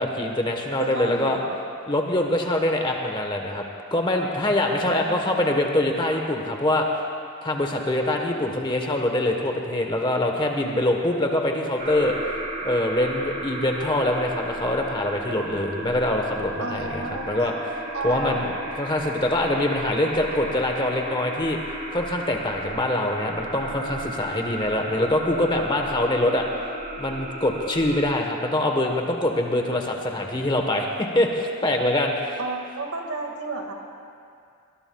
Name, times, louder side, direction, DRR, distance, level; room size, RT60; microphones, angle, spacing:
voice 1, 0.0-1.4 1.9-3.6 3.9-6.9 7.4-12.2 12.6-17.5 18.0-21.6 21.9-26.4 27.0-32.4, left 1 dB, 20° left, 2 dB, 1.1 m, -24 dB
voice 2, 0.8-1.5 4.9-5.6 16.6-17.4 17.9-18.5 32.4-33.7, right 2 dB, 80° right, 2 dB, 1.9 m, -32 dB
sound 1, 11.8-28.1, right 1 dB, 40° right, 1.9 m, -35 dB
22.0 x 20.0 x 2.3 m, 2.3 s
head